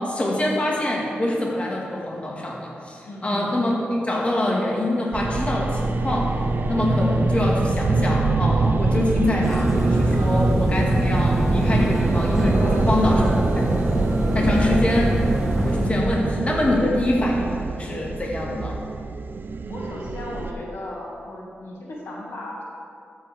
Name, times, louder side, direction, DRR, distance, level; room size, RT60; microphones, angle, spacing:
voice 1, 0.0-6.3 6.7-13.2 14.3-15.2 15.5-18.8, left 1 dB, 30° left, -3 dB, 1.8 m, -25 dB
voice 2, 3.1-3.7 12.5-13.4 19.7-22.6, left 1 dB, 80° left, -4 dB, 2.0 m, -35 dB
sound 1, 5.1-20.5, right 3 dB, 55° right, 0.5 m, -24 dB
sound 2, 9.4-15.9, equal, 5° right, 1.3 m, -24 dB
13.0 x 7.9 x 3.5 m, 2.4 s
cardioid pair, 75°, 4 cm